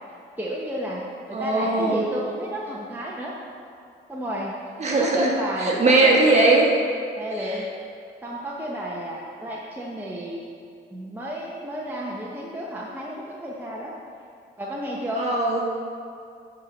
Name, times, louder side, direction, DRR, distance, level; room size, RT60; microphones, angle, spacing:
voice 1, 0.4-3.3 4.1-4.5 5.0-6.2 7.2-7.7 8.2-10.4 10.9-13.9 14.6-15.2, equal, 10° right, -4 dB, 1.1 m, -32 dB
voice 2, 1.3-2.0 4.8-5.3 5.6-6.7 7.4-7.5 15.2-15.6, right 2 dB, 35° right, -2 dB, 1.7 m, -19 dB
9.5 x 4.6 x 5.2 m, 2.4 s
cardioid pair, 90°, 20 cm